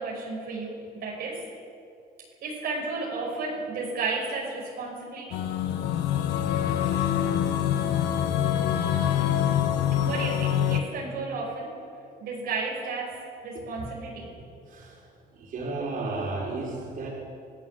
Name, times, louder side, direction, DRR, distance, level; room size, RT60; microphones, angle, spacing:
voice 1, 0.0-1.4 2.4-5.4 10.0-11.7 12.2-13.2 13.4-14.3, right 3 dB, 70° right, -4 dB, 5.6 m, -33 dB
sound 1, 5.3-10.8, left 10 dB, 85° left, 1.6 m, -25 dB
voice 2, 14.7-15.1 15.3-17.1, right 3 dB, 55° right, -2 dB, 6.1 m, -33 dB
25.5 x 15.0 x 7.6 m, 2.5 s
cardioid pair, 110°, 17 cm